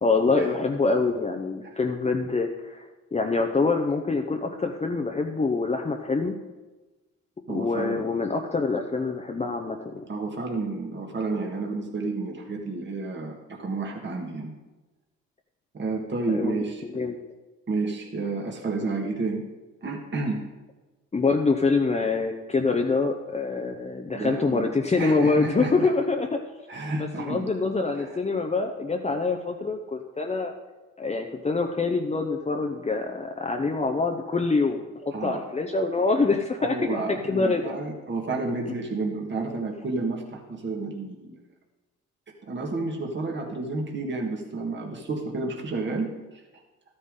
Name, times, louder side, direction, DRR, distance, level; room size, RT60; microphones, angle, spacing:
voice 1, 0.0-2.8 3.1-6.4 7.5-10.0 16.3-16.6 16.9-17.2 21.1-26.3 27.0-30.5 31.0-37.0 37.3-37.6, left 3 dB, 20° left, 3 dB, 0.8 m, -25 dB
voice 2, 7.5-8.0 10.1-14.5 15.7-16.8 17.7-19.4 19.8-20.4 24.1-24.7 25.0-25.9 26.7-27.5 28.0-28.2 35.1-35.4 36.6-41.4 42.4-46.4, right 3 dB, 40° right, 1 dB, 1.8 m, -31 dB
13.0 x 9.7 x 3.8 m, 1.2 s
cardioid pair, 90°, 30 cm